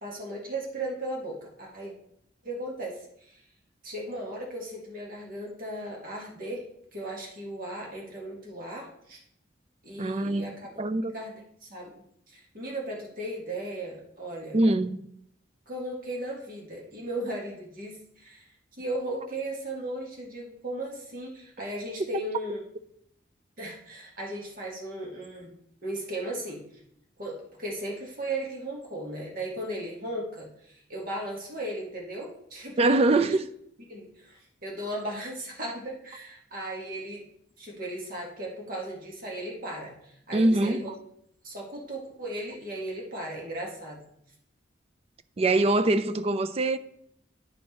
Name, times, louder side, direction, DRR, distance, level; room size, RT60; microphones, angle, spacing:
voice 1, 0.0-1.9 2.4-3.4 3.8-6.7 6.9-9.2 9.8-10.7 11.1-11.9 12.3-14.6 15.7-18.5 18.8-22.6 23.6-25.5 25.8-26.6 27.2-33.3 33.9-37.2 37.6-40.9 41.4-44.0, right 1 dB, 50° right, 1.9 m, -36 dB
voice 2, 10.0-10.5 10.8-11.1 14.5-15.1 32.8-33.5 40.3-40.9 45.4-46.8, right 2 dB, 35° right, 0.4 m, -23 dB
9.9 x 4.6 x 4.3 m
head